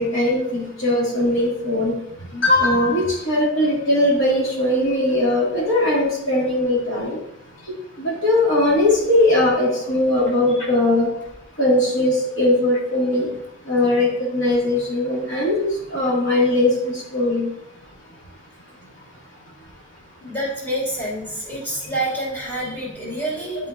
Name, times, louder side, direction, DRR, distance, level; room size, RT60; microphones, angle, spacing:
voice 1, 0.0-7.2 7.6-11.1 11.5-13.3 13.6-17.5, left 1 dB, 65° left, -5 dB, 2.4 m, -20 dB
voice 2, 20.2-23.7, right 1 dB, 10° left, -6 dB, 2.6 m, -27 dB
10.5 x 4.9 x 2.7 m, 0.81 s
head